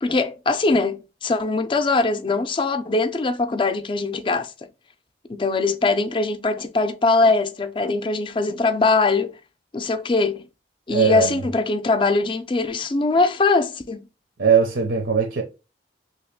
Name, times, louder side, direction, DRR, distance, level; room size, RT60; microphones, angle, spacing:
voice 1, 0.0-4.5 5.3-9.3 9.7-10.5 10.9-14.1, left 3 dB, 25° left, 0.4 m, -21 dB
voice 2, 10.9-11.5 14.4-15.4, right 6 dB, 75° right, 0.7 m, -20 dB
3.1 x 2.9 x 3.5 m
head